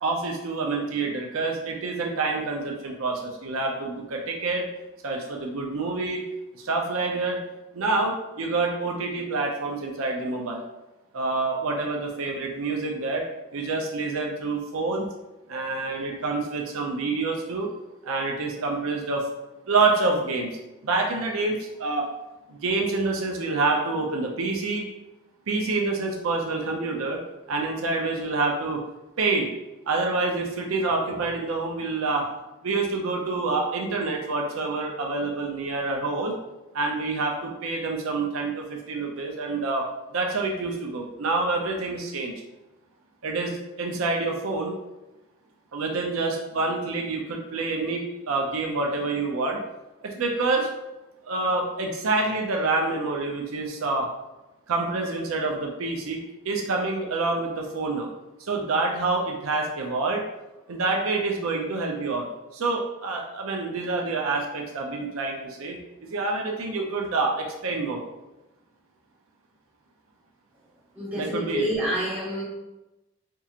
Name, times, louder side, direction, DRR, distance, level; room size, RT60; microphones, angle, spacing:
voice 1, 0.0-4.7 5.0-6.3 6.6-7.4 7.7-10.6 11.1-13.3 13.5-15.1 15.5-17.7 18.0-19.2 19.7-20.5 20.8-22.1 22.5-24.8 25.5-27.2 27.5-28.8 29.2-29.5 29.9-32.3 32.6-36.3 36.7-39.9 40.1-42.3 43.2-44.7 45.7-49.6 50.0-50.7 51.3-54.1 54.7-58.1 58.5-60.2 60.7-62.3 62.5-65.8 66.1-68.0 71.1-71.7, right 3 dB, 70° right, 1 dB, 0.5 m, -27 dB
voice 2, 70.9-72.4, equal, 5° right, -9 dB, 1.1 m, -28 dB
4.4 x 2.8 x 2.4 m, 0.99 s
head